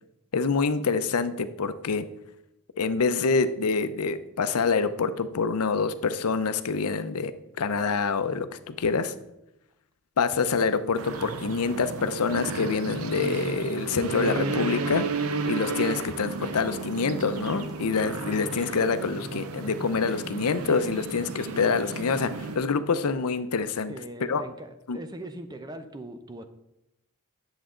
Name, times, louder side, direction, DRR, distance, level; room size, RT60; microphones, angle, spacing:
voice 1, 0.3-2.0 2.8-7.3 7.6-9.1 10.2-15.1 15.4-23.9 24.3-24.4 24.9-25.0, left 4 dB, 85° left, 12 dB, 0.6 m, -26 dB
sound 1, 11.0-22.6, right 4 dB, 75° right, 0.7 m, -33 dB
sound 2, 17.2-19.2 19.9-20.3 20.6-22.0 22.2-22.3, left 1 dB, ahead, 1.4 m, -52 dB
voice 2, 23.9-26.4, right 1 dB, 20° right, 9 dB, 0.6 m, -40 dB
10.0 x 7.0 x 3.8 m, 0.87 s
head